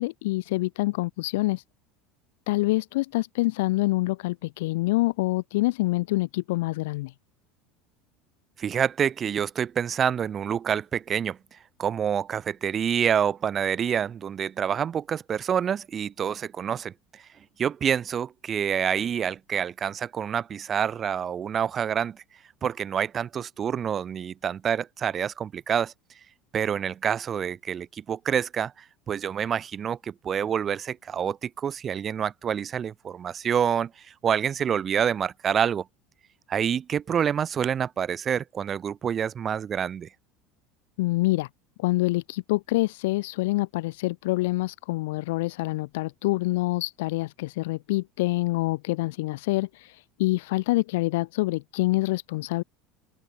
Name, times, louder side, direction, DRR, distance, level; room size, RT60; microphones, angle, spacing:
voice 1, 0.0-1.6 2.5-7.1 41.0-41.5 41.8-52.6, left 20 dB, 65° left, 5.5 m, -26 dB
voice 2, 8.6-17.2 17.6-22.2 22.6-25.9 26.5-35.9 36.5-40.1, right 8 dB, 35° right, 2.5 m, -27 dB
open air
figure-of-eight pair, 70°, 0 cm